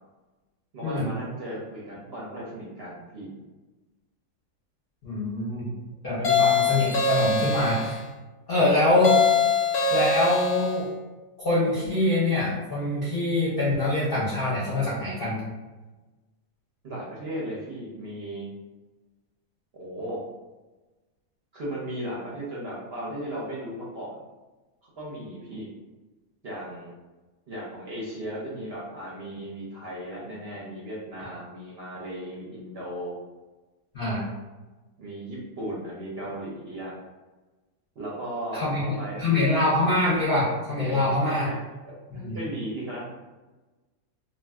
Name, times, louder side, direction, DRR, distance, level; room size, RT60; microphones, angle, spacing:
voice 1, 0.7-3.3 8.5-8.7 16.8-18.5 19.8-20.2 21.5-24.2 24.8-25.7 26.4-26.9 27.5-33.1 35.0-36.9 38.0-39.2 40.9-41.6 42.1-43.1, right 1 dB, 60° right, -5 dB, 0.7 m, -36 dB
voice 2, 5.0-5.7 6.0-8.0 8.5-9.2 9.9-10.9 11.4-15.5 33.9-34.3 38.5-41.5 42.2-42.4, left 2 dB, 50° left, -9 dB, 0.7 m, -24 dB
sound 1, 6.2-8.0 9.0-10.8, left 4 dB, 90° left, 0.5 m, -23 dB
2.5 x 2.3 x 3.4 m, 1.2 s
omnidirectional pair, 1.7 m